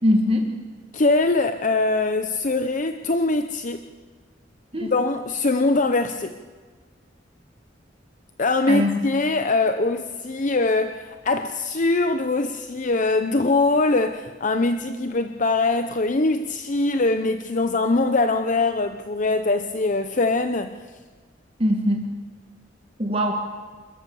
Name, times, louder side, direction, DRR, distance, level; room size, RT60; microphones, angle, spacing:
voice 1, 0.0-0.5 4.7-4.9 8.7-8.9 21.6-22.1 23.0-23.3, left 1 dB, 30° right, 3 dB, 1.6 m, -21 dB
voice 2, 0.9-3.8 4.8-6.4 8.4-20.8, left 3 dB, 45° left, 8 dB, 0.7 m, -22 dB
27.5 x 14.0 x 7.0 m, 1.5 s
head